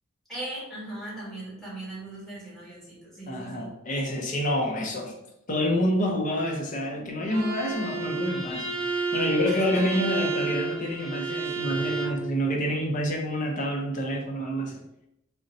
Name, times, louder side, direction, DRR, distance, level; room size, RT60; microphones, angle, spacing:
voice 1, 0.3-3.7 9.4-10.0, right 1 dB, ahead, -9 dB, 1.3 m, -39 dB
voice 2, 3.3-5.2 5.5-14.8, equal, 40° left, 0 dB, 0.5 m, -28 dB
Bowed string instrument, 7.3-12.2, right 4 dB, 60° right, 0.9 m, -31 dB
2.6 x 2.1 x 3.9 m, 0.82 s
head